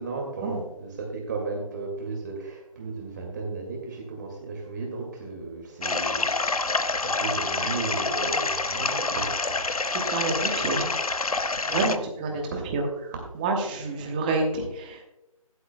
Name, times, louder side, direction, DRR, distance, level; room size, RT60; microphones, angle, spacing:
voice 1, 0.0-6.3 6.6-9.8 11.7-11.9 12.3-12.7, right 3 dB, 30° right, 0 dB, 2.0 m, -35 dB
sound 1, 5.8-12.0, left 3 dB, 80° left, 0.7 m, -27 dB
voice 2, 9.9-10.9 11.7-12.8 13.4-15.0, right 3 dB, 15° right, 2 dB, 1.1 m, -28 dB
17.0 x 7.9 x 2.2 m, 0.91 s
figure-of-eight pair, 155°, 18 cm